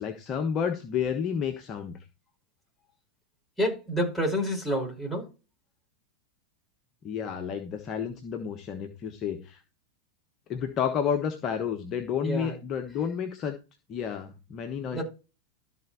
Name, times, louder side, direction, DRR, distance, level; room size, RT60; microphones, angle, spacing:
voice 1, 0.0-2.0 7.0-9.6 10.5-13.6 13.9-15.0, left 7 dB, 30° left, 1.2 m, -30 dB
voice 2, 3.6-5.3 12.2-12.5 14.9-15.0, equal, ahead, 5.3 m, -28 dB
13.5 x 4.6 x 4.3 m
figure-of-eight pair, 90°, 0 cm